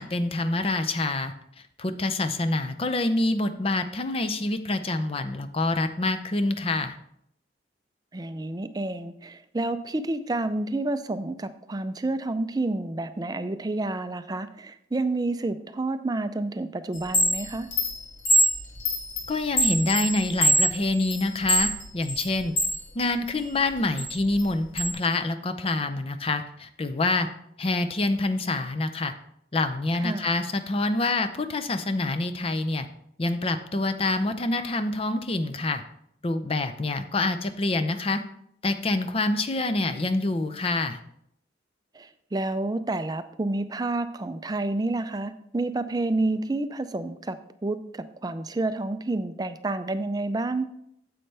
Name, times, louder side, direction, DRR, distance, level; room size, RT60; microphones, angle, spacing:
voice 1, 0.0-1.3 1.8-7.0 19.3-22.5 22.9-27.3 27.6-29.1 29.5-32.9 33.2-35.8 36.2-38.2 38.6-41.0, left 2 dB, 30° left, 9 dB, 0.6 m, -26 dB
voice 2, 8.1-17.7 30.0-30.3 41.9-47.4 47.6-50.7, right 2 dB, 20° right, 11 dB, 0.4 m, -29 dB
Chime, 16.9-22.8 23.2-24.9, right 1 dB, 85° left, 2.3 m, -24 dB
9.6 x 7.7 x 3.4 m, 0.73 s
head